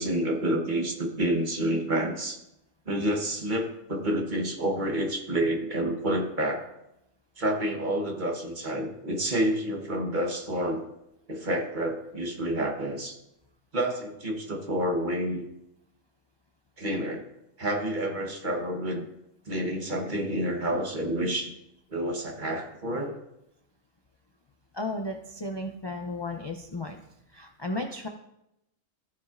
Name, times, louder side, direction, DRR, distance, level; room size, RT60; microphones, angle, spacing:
voice 1, 0.0-2.4 2.9-6.6 7.4-10.8 11.3-13.2 13.7-15.4 16.8-17.3 17.6-19.1 19.5-21.5 21.9-23.2, right 1 dB, 40° right, 2 dB, 1.2 m, -29 dB
voice 2, 24.7-27.0 27.3-28.1, left 2 dB, 40° left, 3 dB, 0.3 m, -34 dB
14.5 x 7.3 x 2.5 m, 0.85 s
omnidirectional pair, 1.4 m